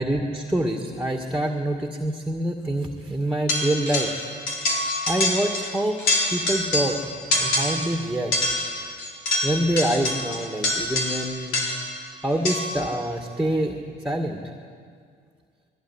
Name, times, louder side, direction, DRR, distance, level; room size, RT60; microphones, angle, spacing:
voice 1, 0.0-4.1 5.1-6.0 6.3-7.0 7.3-8.3 9.4-11.6 12.2-13.8 14.0-14.4, right 1 dB, 5° right, 3 dB, 2.0 m, -26 dB
sound 1, 3.5-4.2 4.5-5.7 6.0-7.0 7.3-7.9 8.3-11.9 12.5-12.8, left 2 dB, 80° left, 4.3 m, -25 dB
21.0 x 17.5 x 9.9 m, 2.1 s
cardioid pair, 90°, 20 cm